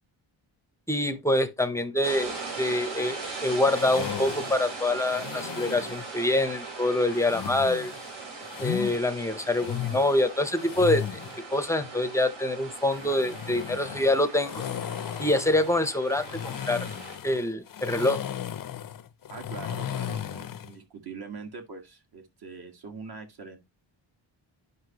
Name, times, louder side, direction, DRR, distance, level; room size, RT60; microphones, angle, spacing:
voice 1, 0.9-7.9 8.6-11.2 11.5-14.6 15.2-16.9 17.2-18.2, left 1 dB, 5° left, 0.6 m, -25 dB
sound 1, 2.0-17.2, right 4 dB, 75° right, 4.0 m, -40 dB
sound 2, 3.7-6.1 7.1-9.0 9.4-11.4 12.8-20.8, left 10 dB, 45° left, 0.5 m, -36 dB
voice 2, 19.3-23.6, right 5 dB, 50° right, 1.7 m, -43 dB
9.4 x 5.5 x 2.9 m
wide cardioid pair, 160°, 48 cm